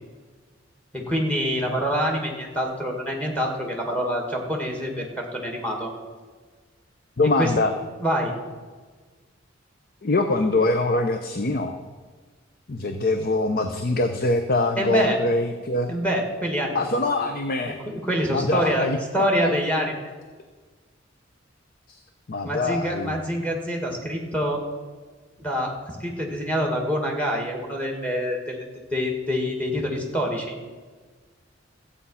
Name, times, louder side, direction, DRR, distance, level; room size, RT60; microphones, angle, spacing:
voice 1, 0.9-5.9 7.4-7.5 8.0-8.3 14.8-15.2 15.9-17.2 17.7-18.9 19.1-19.9 22.4-24.6 25.4-28.6 28.9-30.5, equal, 5° left, 1 dB, 2.2 m, -26 dB
voice 2, 7.2-7.7 10.0-11.8 12.7-15.9 16.7-17.8 18.3-19.0 19.4-19.5 22.3-23.2, left 2 dB, 50° left, 7 dB, 0.7 m, -23 dB
14.0 x 8.5 x 5.6 m, 1.4 s
head